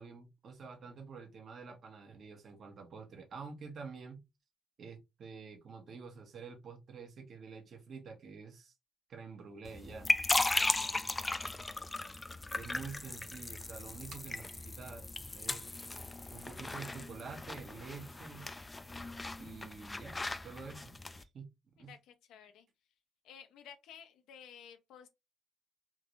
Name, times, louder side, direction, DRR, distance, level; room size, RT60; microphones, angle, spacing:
voice 1, 0.0-4.2 4.8-8.7 9.1-10.1 12.6-15.8 16.3-18.5 19.4-21.5 21.8-21.9, right 5 dB, 55° right, 1.1 m, -48 dB
Packing tape duct tape, 9.4-15.9, right 4 dB, 75° right, 1.3 m, -65 dB
sound 1, 9.7-21.2, left 2 dB, 20° left, 0.4 m, -37 dB
voice 2, 10.5-11.1 21.8-22.7 23.2-25.1, left 8 dB, 90° left, 0.7 m, -54 dB
3.7 x 2.5 x 3.0 m
cardioid pair, 90°, 0 cm